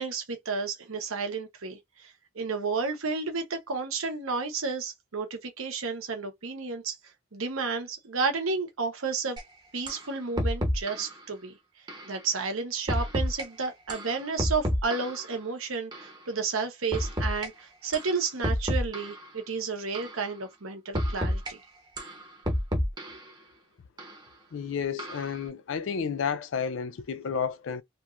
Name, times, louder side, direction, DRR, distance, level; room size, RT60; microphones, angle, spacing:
voice 1, 0.0-6.9 7.3-9.4 9.7-11.6 12.1-21.6, right 4 dB, 85° right, 1.0 m, -32 dB
sound 1, 9.4-9.5 9.9-10.1 10.4-11.1 11.9-12.1 12.9-13.4 13.9-15.3 15.9-16.1 16.9-17.5 17.9-18.1 18.4-19.3 19.9-20.2 20.9-21.5 22.0-23.3 24.0-24.1 25.0-25.4, equal, 20° right, 0.8 m, -29 dB
voice 2, 24.5-27.8, left 6 dB, 65° left, 0.4 m, -31 dB
2.9 x 2.5 x 2.5 m
head